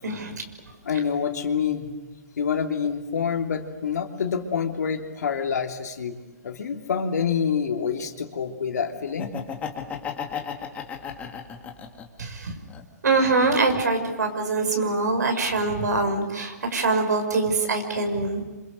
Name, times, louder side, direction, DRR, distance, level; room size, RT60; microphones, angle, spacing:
voice 1, 0.0-0.4 12.2-12.6 13.0-18.4, right 3 dB, 90° right, 5 dB, 6.1 m, -24 dB
voice 2, 0.8-1.9 2.4-9.3, left 7 dB, 75° left, 4 dB, 3.2 m, -27 dB
Laughter, 9.1-12.2 12.7-13.8, left 7 dB, 15° left, 2.3 m, -34 dB
28.5 x 26.5 x 6.9 m, 1.2 s
hypercardioid pair, 150°, 9 cm